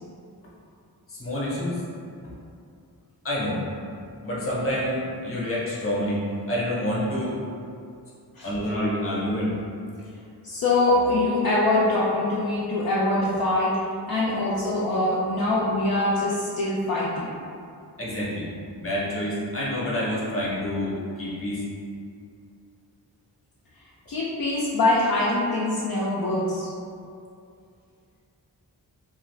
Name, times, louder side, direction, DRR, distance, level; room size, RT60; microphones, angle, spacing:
voice 1, 1.1-1.9 3.2-3.6 4.2-6.2 6.5-7.4 8.4-9.6 18.0-18.5 18.7-21.6, left 1 dB, 35° left, -7 dB, 0.8 m, -27 dB
voice 2, 10.4-13.8 14.1-17.3 24.1-26.7, left 2 dB, 60° left, -7 dB, 0.5 m, -23 dB
2.5 x 2.3 x 3.2 m, 2.4 s
wide cardioid pair, 105°, 40 cm